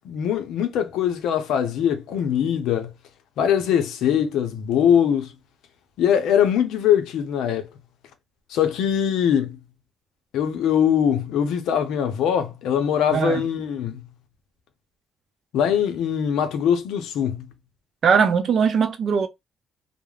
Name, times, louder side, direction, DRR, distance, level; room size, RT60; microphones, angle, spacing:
voice 1, 0.0-2.9 3.4-5.3 6.0-7.7 8.5-9.6 10.3-14.0 15.5-17.5, left 9 dB, 85° left, 0.5 m, -22 dB
voice 2, 13.1-13.4 18.0-19.3, right 6 dB, 60° right, 0.5 m, -20 dB
2.3 x 2.0 x 3.2 m
cardioid pair, 90°, 0 cm